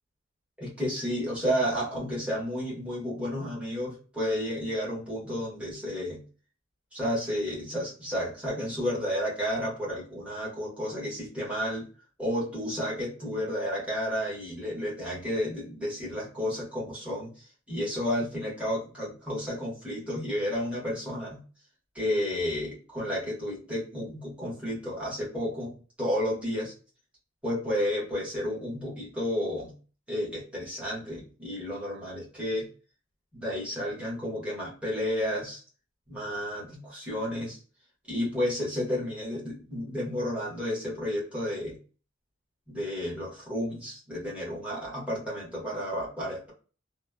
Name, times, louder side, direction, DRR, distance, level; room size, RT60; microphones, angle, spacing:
voice 1, 0.6-6.2 6.9-11.9 12.2-21.4 21.9-26.7 27.4-29.7 30.1-32.7 33.3-35.6 36.1-37.6 38.1-41.8 42.7-46.5, equal, 5° right, -7 dB, 1.3 m, -32 dB
3.1 x 2.1 x 2.2 m, 0.37 s
head